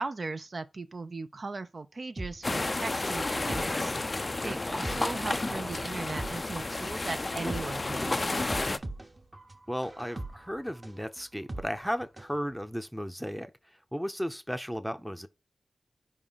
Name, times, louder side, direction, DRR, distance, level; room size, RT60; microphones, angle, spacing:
voice 1, 0.0-3.9 4.4-8.8, right 3 dB, 55° right, 0.4 m, -38 dB
sound 1, 2.2-12.4 12.7-12.8, right 2 dB, 30° right, 0.9 m, -42 dB
sound 2, 2.4-8.8, left 2 dB, 35° left, 0.4 m, -31 dB
voice 2, 9.7-13.5 13.9-15.3, equal, ahead, 0.6 m, -35 dB
4.9 x 3.7 x 5.6 m
wide cardioid pair, 80°, 0 cm